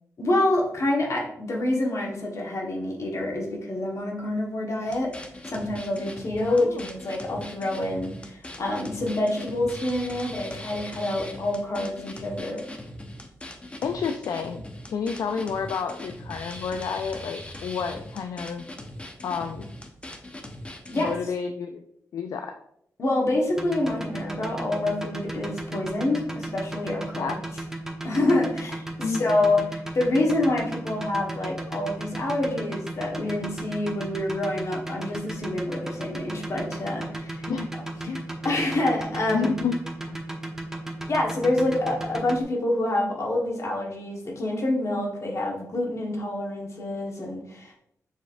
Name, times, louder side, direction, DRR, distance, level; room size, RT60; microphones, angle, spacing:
voice 1, 0.2-5.2 5.5-12.6 20.9-21.1 23.0-27.4 28.0-37.5 38.0-38.2 38.4-39.5 41.1-47.8, left 1 dB, 55° left, -1 dB, 1.3 m, -27 dB
sound 1, 4.8-21.2, left 1 dB, 20° left, 0.8 m, -40 dB
voice 2, 6.5-6.9 13.8-14.6 14.9-18.6 19.2-19.7 21.0-21.8 22.1-22.5 27.2-27.4 29.0-29.3 37.5-37.7 38.1-38.3 39.3-39.7 40.1-40.2, left 6 dB, 75° left, 6 dB, 0.3 m, -30 dB
sound 2, 23.5-42.4, right 1 dB, 10° right, 0.9 m, -34 dB
6.3 x 3.2 x 2.5 m, 0.72 s
cardioid pair, 60°, 6 cm